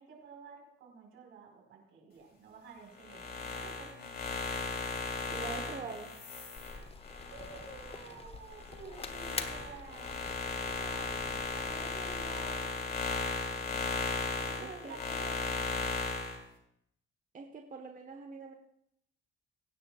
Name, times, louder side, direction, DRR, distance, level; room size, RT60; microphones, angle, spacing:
voice 1, 0.0-4.4 7.3-10.2 10.6-13.9 14.4-15.9, right 4 dB, 80° right, 1 dB, 5.1 m, -51 dB
sound 1, 3.0-8.1 8.5-16.4, left 3 dB, 50° left, 3.5 m, -36 dB
voice 2, 5.3-6.1 14.6-15.0 17.3-18.5, right 4 dB, 40° right, 2 dB, 1.4 m, -44 dB
sound 2, 6.6-12.5, left 4 dB, 30° left, 1.1 m, -46 dB
23.0 x 9.9 x 2.5 m, 0.74 s
cardioid pair, 90°, 20 cm